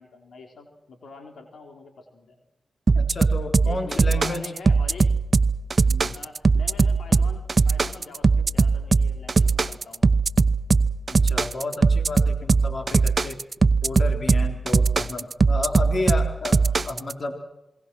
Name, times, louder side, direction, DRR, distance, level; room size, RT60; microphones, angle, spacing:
voice 1, 0.0-2.4 3.6-5.1 6.0-10.1 13.9-14.1 15.9-16.0 16.6-16.8, left 4 dB, 80° left, 4 dB, 3.9 m, -44 dB
voice 2, 2.9-4.5 5.9-6.2 11.1-13.4 13.8-16.6 16.9-17.4, left 2 dB, 60° left, 5 dB, 4.0 m, -31 dB
sound 1, 2.9-17.1, right 4 dB, 50° right, 0.9 m, -20 dB
27.0 x 22.5 x 6.3 m, 0.93 s
cardioid pair, 50°, 0 cm